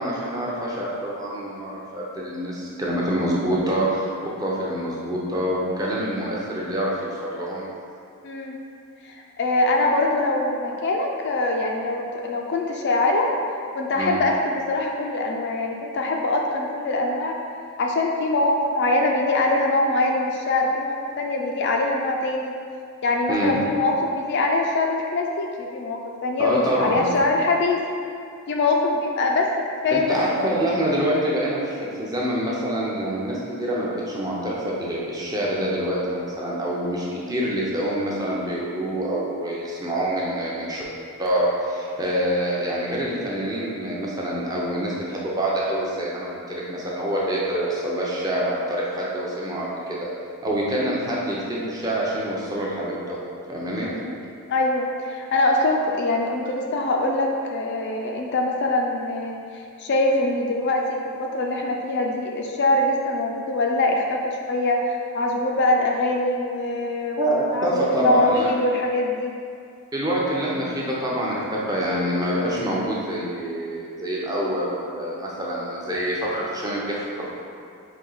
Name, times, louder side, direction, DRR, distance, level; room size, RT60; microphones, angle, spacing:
voice 1, 0.0-7.7 13.9-14.2 23.3-23.6 26.4-27.1 29.9-40.8 41.2-50.1 50.4-53.2 53.5-53.9 67.2-68.5 69.9-77.3, right 1 dB, 15° right, -5 dB, 0.6 m, -26 dB
voice 2, 8.2-8.6 9.0-13.3 13.7-17.4 17.8-22.5 23.0-27.8 28.5-29.5 29.8-30.3 30.6-30.7 53.7-54.1 54.5-59.4 59.8-69.3 75.4-75.6, left 2 dB, 50° left, 1 dB, 0.4 m, -23 dB
4.3 x 2.8 x 3.9 m, 2.4 s
head